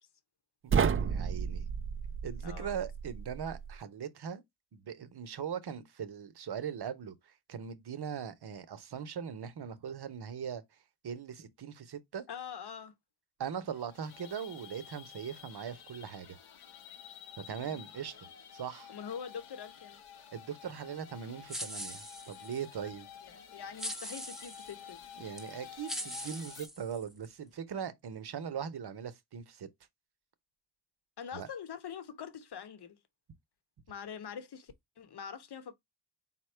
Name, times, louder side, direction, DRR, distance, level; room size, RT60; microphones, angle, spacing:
voice 1, 0.6-1.7 2.2-4.4 4.7-10.6 11.0-12.2 13.4-16.4 17.4-18.9 20.3-23.1 25.2-29.7 31.3-31.5, right 7 dB, 55° right, 0.9 m, -40 dB
sound 1, 0.7-3.8, right 6 dB, 30° right, 0.4 m, -32 dB
voice 2, 2.4-2.8 12.3-12.9 17.6-17.7 18.9-20.0 22.8-22.9 23.2-25.3 31.2-33.0 33.9-35.7, left 7 dB, 55° left, 1.0 m, -44 dB
sound 2, 13.7-26.7, left 8 dB, 80° left, 0.9 m, -51 dB
sound 3, 21.5-22.6 23.8-24.7 25.4-25.5 25.9-27.3, equal, ahead, 0.8 m, -41 dB
4.2 x 2.2 x 4.4 m
supercardioid pair, 45°, 49 cm